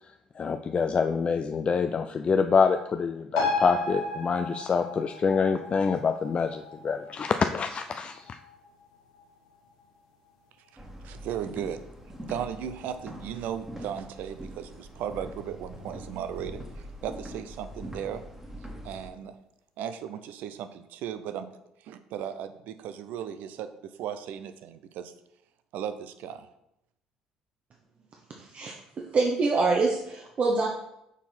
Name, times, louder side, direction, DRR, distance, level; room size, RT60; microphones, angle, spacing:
voice 1, 0.4-8.4, left 5 dB, 40° left, 7 dB, 0.4 m, -26 dB
sound 1, 3.4-10.3 10.7-10.8, left 3 dB, 85° left, 1.0 m, -35 dB
sound 2, 10.8-19.1, equal, 10° right, 1.5 m, -43 dB
voice 2, 11.0-11.8 12.3-16.6 17.0-18.2 18.8-19.4 19.8-21.5 21.8-25.1 25.7-26.5, right 9 dB, 65° right, 11 dB, 0.5 m, -36 dB
voice 3, 28.4-30.7, right 3 dB, 45° right, -1 dB, 0.9 m, -26 dB
5.7 x 4.4 x 4.3 m, 0.82 s
hypercardioid pair, 55°, 3 cm